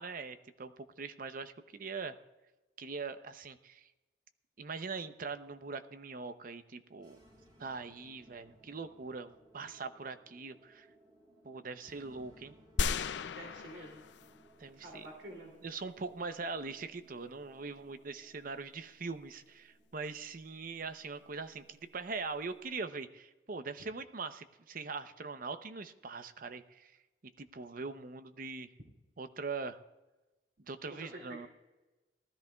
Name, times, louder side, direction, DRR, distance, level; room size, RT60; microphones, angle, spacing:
voice 1, 0.0-2.1 2.8-3.9 4.6-7.2 7.6-10.9 11.4-12.5 14.6-15.0 15.6-26.9 27.4-28.7 29.2-29.8 30.7-31.5, right 4 dB, 50° right, 10 dB, 0.7 m, -42 dB
sound 1, 6.9-23.0, right 1 dB, 25° right, 3.7 m, -64 dB
sound 2, 12.8-14.5 15.0-15.1, left 4 dB, 85° left, 0.4 m, -35 dB
voice 2, 13.3-13.9 14.8-15.5 31.0-31.5, right 1 dB, 90° right, -1 dB, 2.8 m, -48 dB
19.0 x 13.0 x 2.3 m, 1.1 s
head